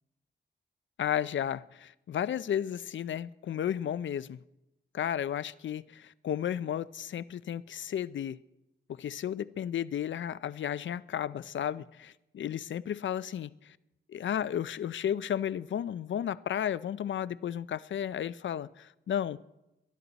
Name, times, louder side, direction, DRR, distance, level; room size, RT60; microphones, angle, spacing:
voice 1, 1.0-4.4 4.9-8.4 8.9-13.8 14.1-19.4, left 9 dB, 70° left, 0.5 m, -33 dB
22.0 x 12.0 x 4.0 m
wide cardioid pair, 135°, 20 cm